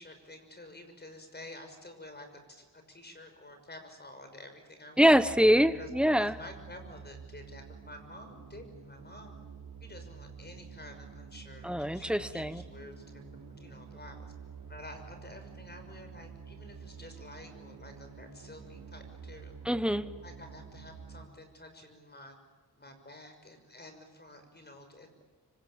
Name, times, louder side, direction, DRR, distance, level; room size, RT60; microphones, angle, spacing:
voice 1, 0.0-5.1 5.8-5.9 6.2-9.3 9.8-13.2 13.6-14.3 14.7-19.5 20.2-22.4 22.8-25.2, left 1 dB, 25° left, 6 dB, 6.1 m, -50 dB
voice 2, 5.0-6.4 11.6-12.6 19.6-20.1, equal, ahead, 12 dB, 1.2 m, -24 dB
sound 1, 5.1-21.3, right 6 dB, 55° right, 5.7 m, -49 dB
25.5 x 25.5 x 8.9 m, 1.3 s
wide cardioid pair, 105°, 39 cm